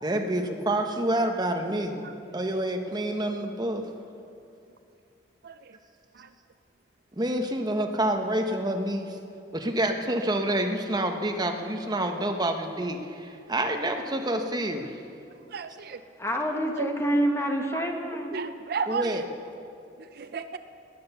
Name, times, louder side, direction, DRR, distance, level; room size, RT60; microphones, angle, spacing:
voice 1, 0.0-3.8 7.2-9.2 9.5-14.9 18.9-19.2, right 1 dB, 25° right, 4 dB, 1.0 m, -28 dB
voice 2, 15.5-16.0 16.8-16.9 17.7-17.9 18.3-19.2 20.2-20.6, right 5 dB, 60° right, 10 dB, 0.5 m, -33 dB
voice 3, 16.2-18.4, equal, 15° left, 2 dB, 1.5 m, -27 dB
18.0 x 10.0 x 6.9 m, 2.6 s
head